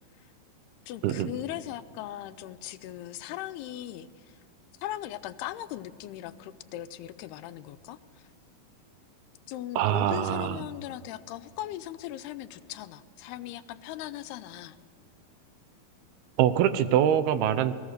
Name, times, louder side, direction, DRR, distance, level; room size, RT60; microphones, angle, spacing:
voice 1, 0.9-4.4 4.8-8.0 9.5-14.8, left 13 dB, 85° left, 12 dB, 2.7 m, -39 dB
voice 2, 9.8-10.6 16.4-17.7, right 10 dB, 75° right, 12 dB, 2.7 m, -24 dB
28.0 x 19.5 x 6.6 m, 2.2 s
omnidirectional pair, 4.6 m